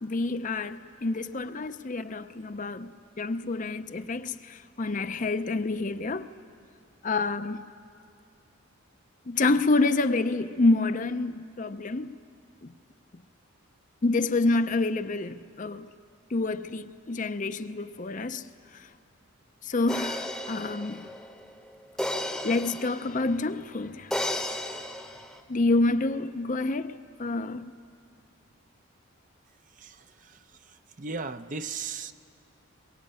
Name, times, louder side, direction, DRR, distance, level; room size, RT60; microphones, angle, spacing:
voice 1, 0.0-6.3 7.0-7.6 9.3-12.1 12.6-12.7 14.0-15.9 16.3-18.4 19.6-21.1 22.4-24.1 25.5-26.9 27.2-27.6, left 2 dB, 35° left, 0.5 m, -28 dB
sound 1, 19.9-23.4 24.1-25.4, left 1 dB, ahead, 0.9 m, -34 dB
voice 2, 29.8-30.4 30.7-32.1, right 4 dB, 40° right, 0.6 m, -37 dB
23.0 x 21.0 x 8.8 m
head